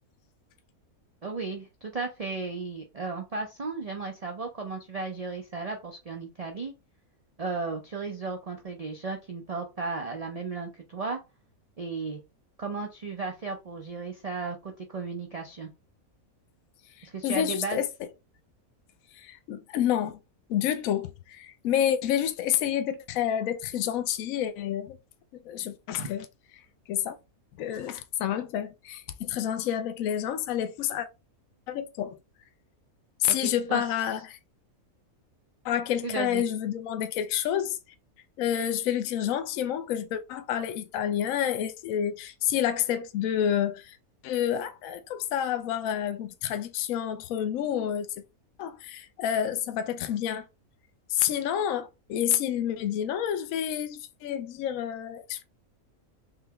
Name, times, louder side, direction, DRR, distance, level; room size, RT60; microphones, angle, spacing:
voice 1, 1.2-6.7 7.4-11.2 11.8-12.2 12.6-15.7 17.0-17.8 26.0-26.1 33.4-33.8 36.0-36.4, right 4 dB, 75° right, 0.3 m, -35 dB
voice 2, 17.0-17.9 19.1-20.2 20.5-25.0 25.4-26.3 26.9-27.2 27.6-31.1 31.7-32.2 33.2-34.4 35.6-37.8 38.4-44.0 44.2-48.1 48.6-50.5 51.1-55.4, left 10 dB, 70° left, 0.9 m, -29 dB
3.8 x 2.8 x 3.4 m
omnidirectional pair, 1.6 m